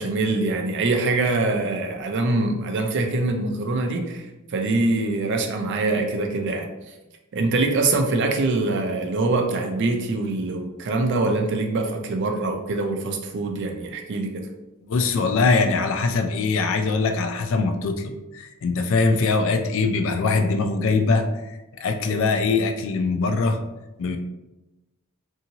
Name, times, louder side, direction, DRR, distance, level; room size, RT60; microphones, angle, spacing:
voice 1, 0.0-6.9 7.3-14.5, right 2 dB, 55° right, 3 dB, 0.4 m, -24 dB
voice 2, 14.9-23.6 24.0-24.2, left 4 dB, 60° left, 7 dB, 0.3 m, -22 dB
2.7 x 2.7 x 2.7 m, 1.0 s
head